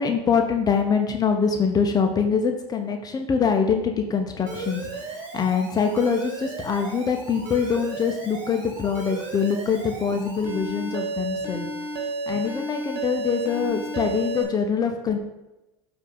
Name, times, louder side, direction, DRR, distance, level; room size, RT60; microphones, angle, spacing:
voice 1, 0.0-11.7 12.3-15.2, left 6 dB, 25° left, 4 dB, 0.7 m, -24 dB
Alarm, 4.5-14.4, right 2 dB, 60° right, 1.7 m, -33 dB
7.3 x 2.7 x 5.4 m, 1.0 s
hypercardioid pair, 95°, 15 cm